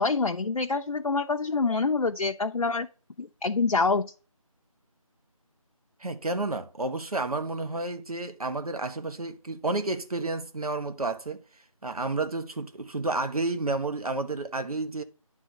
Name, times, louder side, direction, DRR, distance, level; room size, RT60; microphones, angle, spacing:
voice 1, 0.0-2.9 3.2-4.1, left 4 dB, 90° left, 0.6 m, -26 dB
voice 2, 6.0-11.4 11.8-15.0, right 2 dB, 85° right, 1.1 m, -31 dB
9.9 x 3.4 x 6.4 m
figure-of-eight pair, 170°, 18 cm